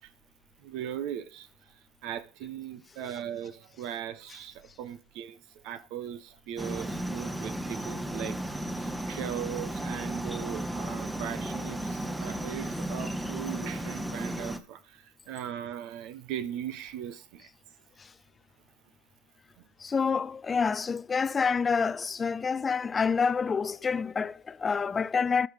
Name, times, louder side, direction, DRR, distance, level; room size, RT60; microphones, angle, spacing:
voice 1, 0.6-8.4 8.8-17.5 19.6-19.7, right 10 dB, 70° right, 0.9 m, -39 dB
sound 1, 6.6-14.6, right 1 dB, 5° right, 1.0 m, -34 dB
voice 2, 19.8-25.5, left 5 dB, 25° left, 0.4 m, -28 dB
18.0 x 6.2 x 3.5 m
supercardioid pair, 90°, 0 cm